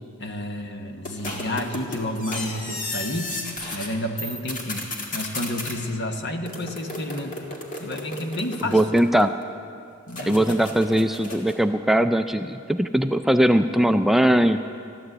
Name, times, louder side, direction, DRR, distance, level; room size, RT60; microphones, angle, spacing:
voice 1, 0.2-7.4 7.8-8.8 10.1-10.6, left 1 dB, 55° left, 5 dB, 1.2 m, -30 dB
sound 1, 1.1-3.9 4.2-5.8 6.5-9.4 10.1-11.6, left 2 dB, 40° left, 2.0 m, -34 dB
voice 2, 8.7-9.3 10.2-14.6, right 1 dB, ahead, 8 dB, 0.3 m, -20 dB
14.0 x 11.5 x 7.9 m, 2.4 s
head